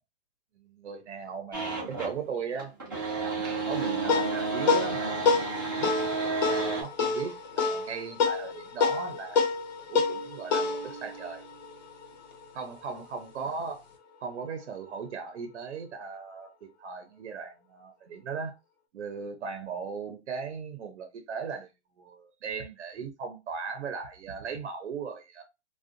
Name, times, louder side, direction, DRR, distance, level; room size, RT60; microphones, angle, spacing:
voice 1, 0.6-5.3 5.8-6.0 6.4-9.5 9.8-11.4 12.5-13.8 14.2-16.5 16.8-18.5 18.9-21.7 22.0-25.4, right 5 dB, 70° right, 0.7 m, -38 dB
sound 1, 1.5-2.2 2.5-6.8, right 3 dB, 20° right, 0.4 m, -31 dB
sound 2, 3.7-12.5, left 4 dB, 40° left, 0.5 m, -29 dB
2.5 x 2.3 x 2.5 m
hypercardioid pair, 175°, 35 cm